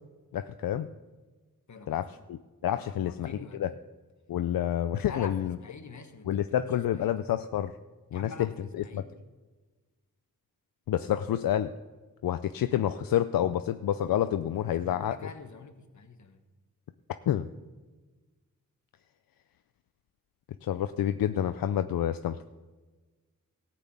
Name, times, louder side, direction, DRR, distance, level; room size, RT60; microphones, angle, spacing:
voice 1, 0.3-0.9 1.9-3.7 4.3-5.6 6.2-7.8 8.1-8.3 8.8-9.0 10.9-11.7 12.2-15.1 17.3-17.5 20.6-22.4, left 11 dB, 85° left, 10 dB, 0.5 m, -28 dB
voice 2, 1.7-2.2 2.9-3.8 5.1-7.1 8.1-9.1 14.6-16.4, left 5 dB, 55° left, 7 dB, 1.4 m, -46 dB
14.0 x 6.0 x 8.5 m, 1.3 s
cardioid pair, 55°, 34 cm